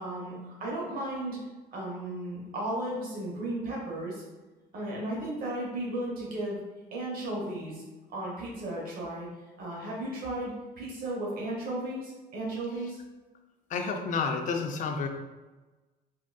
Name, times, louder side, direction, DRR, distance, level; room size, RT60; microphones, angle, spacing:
voice 1, 0.0-1.4 1.7-4.2 4.7-6.6 6.9-7.8 8.1-9.3 9.6-13.0, right 1 dB, 60° right, -4 dB, 0.9 m, -35 dB
voice 2, 13.7-15.1, left 5 dB, 50° left, 4 dB, 0.4 m, -30 dB
3.5 x 2.4 x 2.3 m, 1.2 s
cardioid pair, 110°, 17 cm